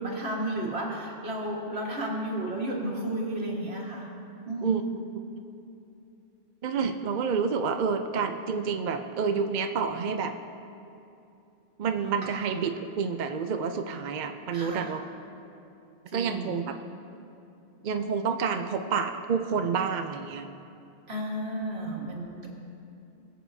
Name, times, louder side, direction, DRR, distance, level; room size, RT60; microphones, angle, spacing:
voice 1, 0.0-4.1 4.5-4.8 12.2-12.3 14.5-14.9 16.1-16.6 21.1-22.5, right 1 dB, 80° right, -2 dB, 1.9 m, -33 dB
voice 2, 6.6-10.3 11.8-15.0 16.1-16.7 17.8-20.5, right 6 dB, 55° right, 6 dB, 0.6 m, -28 dB
21.5 x 7.7 x 2.7 m, 2.8 s
omnidirectional pair, 1.1 m